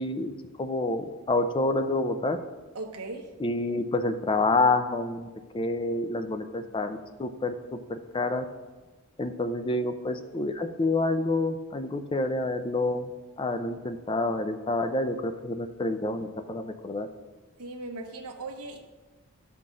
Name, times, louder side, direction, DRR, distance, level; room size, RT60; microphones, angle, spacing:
voice 1, 0.0-2.4 3.4-5.3 5.5-8.5 9.2-13.1 13.4-17.1, left 2 dB, 20° left, 9 dB, 0.4 m, -28 dB
voice 2, 2.7-3.3 17.6-18.8, right 2 dB, 90° right, 2 dB, 1.1 m, -38 dB
12.0 x 5.8 x 3.7 m, 1.2 s
head